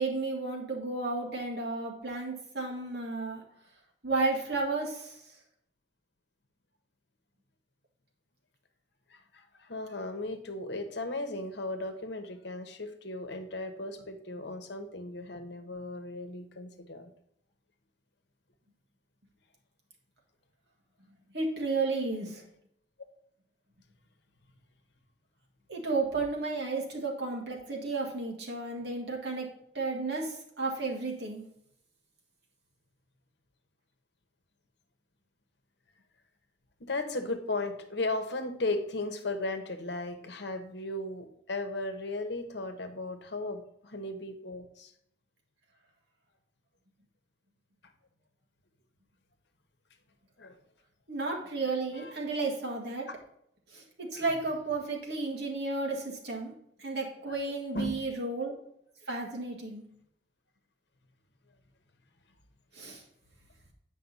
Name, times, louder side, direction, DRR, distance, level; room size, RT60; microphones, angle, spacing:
voice 1, 0.0-3.4 4.0-5.2 21.3-22.4 25.7-29.5 29.7-31.4 51.1-53.1 53.7-56.5 56.8-58.5 59.1-59.8 62.7-63.0, right 3 dB, 65° right, -1 dB, 1.8 m, -33 dB
voice 2, 9.1-17.1 36.8-44.9 50.4-50.5 51.9-52.1 54.1-54.2 57.7-58.0, left 2 dB, 70° left, 7 dB, 1.0 m, -36 dB
8.2 x 5.3 x 4.1 m, 0.72 s
head